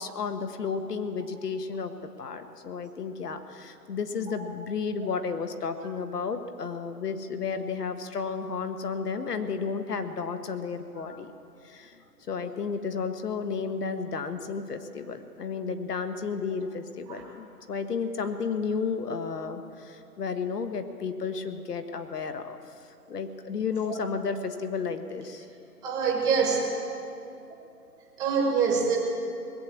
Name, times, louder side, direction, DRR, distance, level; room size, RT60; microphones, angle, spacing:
voice 1, 0.0-11.3 11.6-22.6 23.1-25.5, left 5 dB, 75° left, 8 dB, 1.4 m, -32 dB
voice 2, 25.8-26.6 28.2-29.0, right 5 dB, 10° right, -1 dB, 1.1 m, -25 dB
20.0 x 7.2 x 8.4 m, 2.6 s
hypercardioid pair, 155°, 48 cm